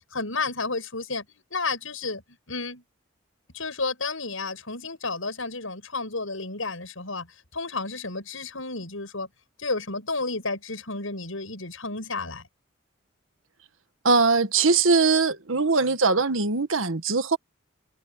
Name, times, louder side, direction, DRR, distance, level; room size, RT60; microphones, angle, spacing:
voice 1, 0.1-1.2 1.5-2.2 2.5-2.8 3.5-7.3 7.5-9.3 9.6-12.5, left 3 dB, 80° left, 7.0 m, -31 dB
voice 2, 14.0-17.4, right 4 dB, 75° right, 1.6 m, -21 dB
head